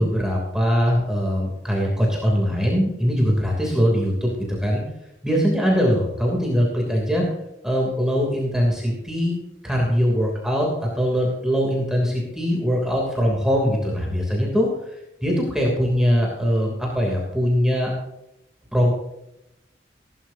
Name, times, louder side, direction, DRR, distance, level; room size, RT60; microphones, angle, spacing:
voice 1, 0.0-4.8 5.2-7.2 7.6-9.3 9.6-14.7 15.2-17.9 18.7-18.9, equal, 5° right, -2 dB, 2.9 m, -21 dB
17.0 x 11.5 x 2.8 m, 0.87 s
head